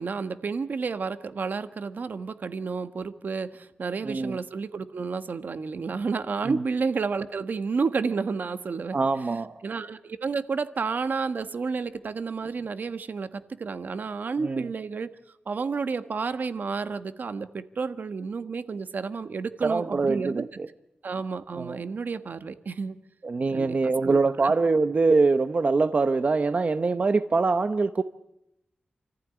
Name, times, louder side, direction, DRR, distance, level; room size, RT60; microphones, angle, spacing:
voice 1, 0.0-9.0 9.6-15.1 15.5-20.4 21.0-23.0 23.5-23.8 24.0-24.5, right 5 dB, 70° right, 10 dB, 1.3 m, -31 dB
voice 2, 4.0-4.4 6.4-6.6 8.9-9.5 14.4-14.7 19.6-20.7 21.6-21.8 23.2-28.0, right 3 dB, 45° right, 9 dB, 0.9 m, -24 dB
28.5 x 14.5 x 9.9 m, 0.85 s
wide cardioid pair, 95°, 3 cm